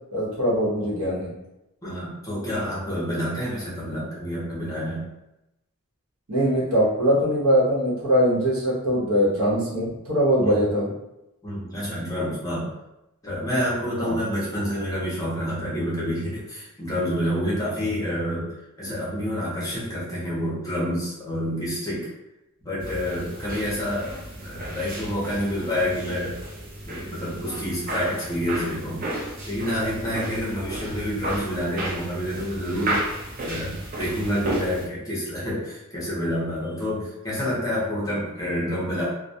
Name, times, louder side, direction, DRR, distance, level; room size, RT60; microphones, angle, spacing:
voice 1, 0.1-1.3 6.3-10.9 14.0-14.2, equal, 75° right, -7 dB, 0.9 m, -22 dB
voice 2, 1.8-5.1 10.4-10.6 11.4-12.7 13.2-18.5 18.8-22.1 22.6-26.4 26.9-33.1 33.4-39.1, equal, 15° left, -7 dB, 0.7 m, -28 dB
sound 1, 22.8-34.9, right 1 dB, 40° right, 0.5 m, -33 dB
2.2 x 2.1 x 2.6 m, 0.91 s
head